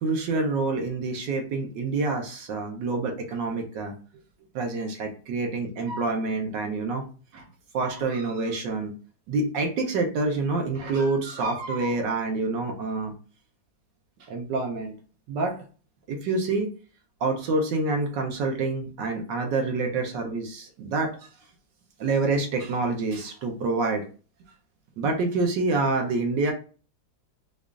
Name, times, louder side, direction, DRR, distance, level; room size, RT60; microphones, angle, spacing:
voice 1, 0.0-3.9 4.5-7.1 7.3-7.4 7.7-8.9 9.3-13.1 14.3-14.9 15.3-15.6 16.1-16.7 17.2-21.1 22.0-24.1 25.0-26.5, right 3 dB, 75° right, 2 dB, 1.3 m, -27 dB
5.0 x 2.4 x 2.3 m, 0.37 s
omnidirectional pair, 2.0 m